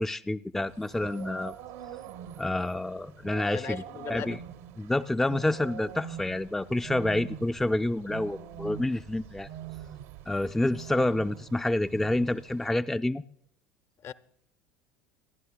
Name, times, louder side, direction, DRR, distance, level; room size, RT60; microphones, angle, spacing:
voice 1, 0.0-1.5 2.4-3.8 4.1-4.4 4.8-9.5 10.3-13.2, left 1 dB, 5° left, 0.4 m, -28 dB
sound 1, 0.6-12.7, right 10 dB, 70° right, 0.9 m, -44 dB
voice 2, 3.5-4.4 14.0-14.1, left 8 dB, 40° left, 0.7 m, -38 dB
26.5 x 11.0 x 2.2 m
hypercardioid pair, 75°, 7 cm